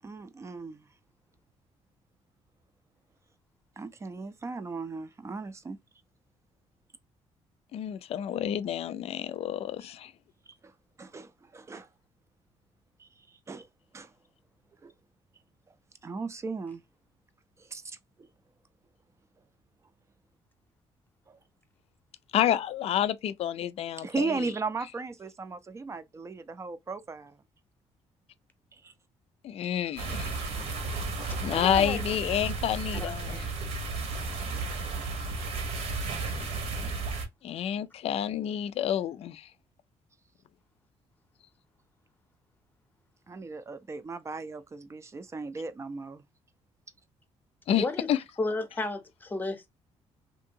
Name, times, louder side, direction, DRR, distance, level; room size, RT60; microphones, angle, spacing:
voice 1, 0.0-0.9 3.8-5.8 10.6-10.7 11.0-11.9 13.0-13.7 13.9-14.1 14.8-14.9 16.0-16.8 17.6-18.3 21.3-21.4 24.0-27.4 28.8-28.9 43.3-46.2, right 4 dB, 25° right, 0.4 m, -37 dB
voice 2, 7.7-10.1 22.3-24.3 29.4-30.3 31.4-33.4 37.4-39.5 47.7-48.2, left 10 dB, 60° left, 0.4 m, -29 dB
sound 1, 30.0-37.2, right 3 dB, 65° right, 1.0 m, -33 dB
voice 3, 31.3-32.0 32.9-33.5 47.8-48.1 48.4-49.7, left 2 dB, 15° left, 0.7 m, -33 dB
2.7 x 2.6 x 2.6 m
cardioid pair, 110°, 12 cm